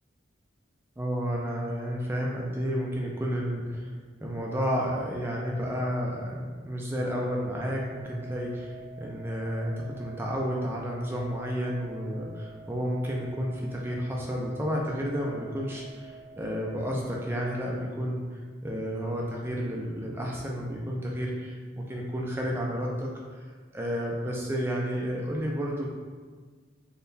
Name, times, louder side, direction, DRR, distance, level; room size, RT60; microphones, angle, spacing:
voice 1, 1.0-3.9 4.2-23.1 23.7-25.9, equal, 10° right, -2 dB, 0.3 m, -31 dB
sound 1, 7.0-17.4, right 4 dB, 65° right, 0.8 m, -48 dB
3.6 x 2.2 x 2.7 m, 1.5 s
head